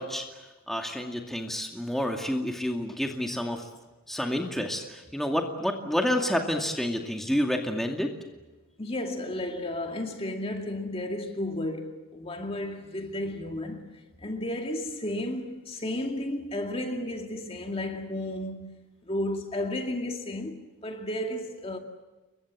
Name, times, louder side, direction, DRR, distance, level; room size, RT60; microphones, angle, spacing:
voice 1, 0.0-3.7 4.1-8.1, equal, ahead, 2.3 m, -29 dB
voice 2, 8.8-18.7 19.1-21.8, left 1 dB, 25° left, 2.4 m, -33 dB
29.5 x 23.5 x 7.5 m
head